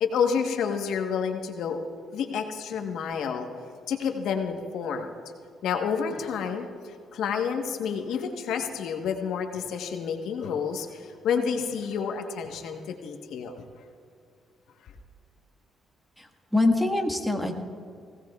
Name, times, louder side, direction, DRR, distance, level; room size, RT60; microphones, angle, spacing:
voice 1, 0.0-1.8 2.1-3.5 3.9-5.1 5.6-13.6, left 6 dB, 80° left, 4 dB, 1.2 m, -29 dB
voice 2, 16.2-17.6, left 2 dB, ahead, 3 dB, 1.6 m, -25 dB
19.5 x 17.0 x 2.4 m, 2.3 s
cardioid pair, 90°, 0 cm